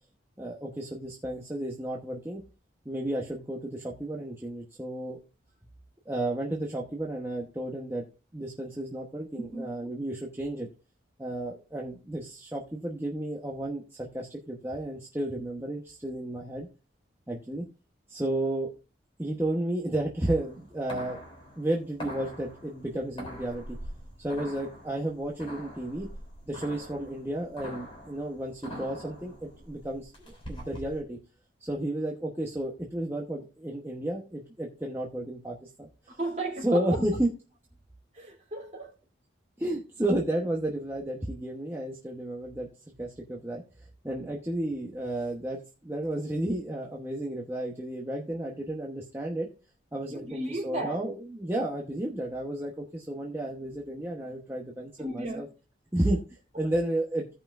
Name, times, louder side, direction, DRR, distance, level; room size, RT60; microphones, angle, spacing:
voice 1, 0.4-2.4 2.8-5.2 6.1-8.0 8.3-10.7 11.2-16.7 17.3-17.7 18.1-18.7 19.2-21.2 21.6-23.6 24.2-26.1 26.5-31.2 31.6-36.2 36.6-37.3 39.6-42.7 43.0-43.6 44.0-49.5 49.9-55.5 55.9-56.2 56.6-57.2, right 1 dB, 10° right, 0.9 m, -32 dB
voice 2, 9.4-9.9 36.1-37.0 38.1-38.9 50.1-51.0 55.0-55.5 56.5-56.9, right 2 dB, 35° right, 3.0 m, -35 dB
sound 1, 20.3-31.0, equal, 30° left, 3.3 m, -44 dB
16.0 x 5.6 x 2.5 m
head